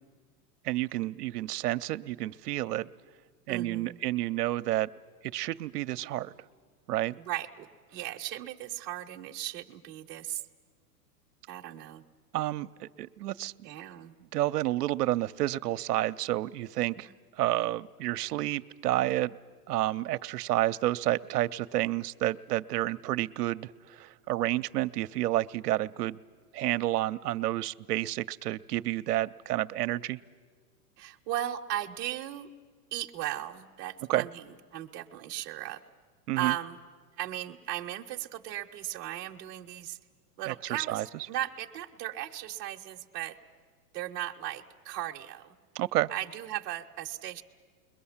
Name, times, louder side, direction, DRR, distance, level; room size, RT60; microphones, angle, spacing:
voice 1, 0.6-2.9 3.5-4.9 5.3-6.3 6.9-7.2 12.3-13.5 14.3-17.1 17.4-19.3 19.7-26.2 26.5-30.2 34.1-34.3 36.3-36.5 40.5-41.0 45.7-46.1, right 15 dB, 70° right, 12 dB, 0.6 m, -30 dB
voice 2, 3.5-4.0 7.2-10.4 11.5-12.0 13.6-14.1 31.0-32.5 32.9-35.8 36.4-36.8 37.2-40.0 40.4-43.4 43.9-45.5 46.1-47.4, right 13 dB, 20° right, 1 dB, 0.7 m, -37 dB
29.5 x 22.0 x 7.2 m, 1.5 s
supercardioid pair, 160°, 48 cm